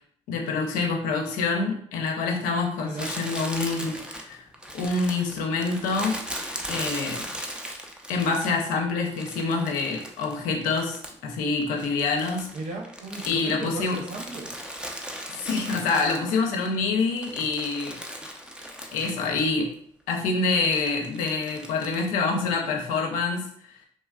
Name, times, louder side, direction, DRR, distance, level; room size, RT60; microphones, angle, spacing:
voice 1, 0.3-4.4 4.7-6.2 6.7-7.3 8.1-12.5 13.2-14.0 15.3-18.0 18.9-19.7 20.1-23.5, left 4 dB, 90° left, 2 dB, 0.5 m, -26 dB
Crumpling crinkling, 3.0-8.7 9.2-11.3 11.6-16.7 17.0-19.5 19.7-19.8 20.7-22.1, equal, 5° right, 0.5 m, -38 dB
voice 2, 12.5-14.6, right 3 dB, 70° right, 2 dB, 0.6 m, -36 dB
3.1 x 2.3 x 2.2 m, 0.63 s
supercardioid pair, 55°, 13 cm